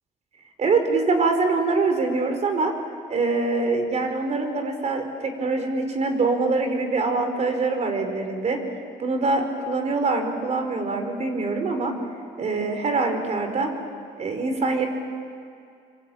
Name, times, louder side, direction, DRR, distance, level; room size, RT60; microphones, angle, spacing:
voice 1, 0.6-2.7 3.1-8.6 9.0-11.9 12.4-13.7 14.2-14.9, right 3 dB, 40° right, 5 dB, 4.9 m, -24 dB
25.5 x 25.5 x 8.8 m, 2.3 s
cardioid pair, 110°, 17 cm